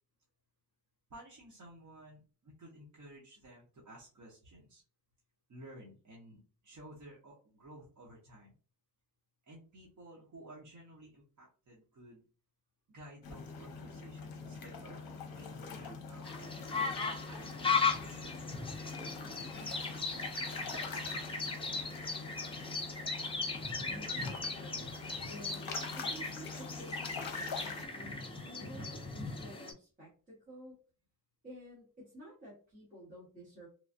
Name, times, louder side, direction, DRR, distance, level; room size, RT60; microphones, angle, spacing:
voice 1, 1.1-4.8 5.5-8.5 9.5-12.2 12.9-16.6 17.2-18.4 19.4-22.1, right 1 dB, 45° right, -4 dB, 0.8 m, -54 dB
sound 1, 13.2-27.9, left 5 dB, 60° left, 0.7 m, -45 dB
sound 2, 16.2-29.7, left 4 dB, 15° left, 0.4 m, -37 dB
voice 2, 23.9-25.0 25.3-30.8 31.4-33.7, equal, 20° right, -9 dB, 1.3 m, -52 dB
3.1 x 2.4 x 2.5 m, 0.38 s
wide cardioid pair, 180°, 40 cm